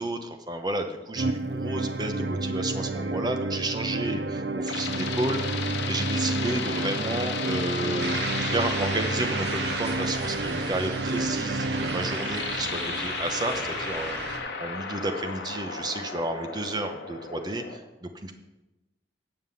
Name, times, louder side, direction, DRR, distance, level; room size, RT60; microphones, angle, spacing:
voice 1, 0.0-18.3, right 1 dB, 25° right, 6 dB, 0.8 m, -32 dB
sound 1, 1.2-13.1, right 2 dB, 65° right, 0.5 m, -31 dB
sound 2, 4.2-17.8, left 5 dB, 85° left, 1.1 m, -35 dB
sound 3, 8.0-14.4, right 3 dB, 80° right, 1.2 m, -34 dB
9.5 x 5.5 x 6.9 m, 1.0 s
head